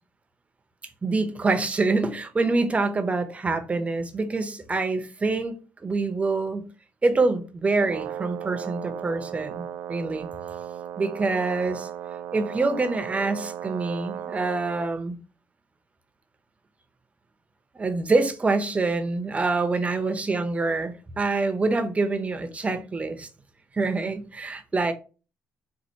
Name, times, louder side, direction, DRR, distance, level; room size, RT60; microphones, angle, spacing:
voice 1, 1.0-6.7 7.0-10.3 11.0-11.9 12.3-15.2 17.8-23.3 23.7-24.9, right 3 dB, 25° right, 0.6 m, -26 dB
Brass instrument, 7.7-14.9, right 10 dB, 80° right, 0.4 m, -36 dB
4.3 x 2.4 x 2.8 m
cardioid pair, 95°, 6 cm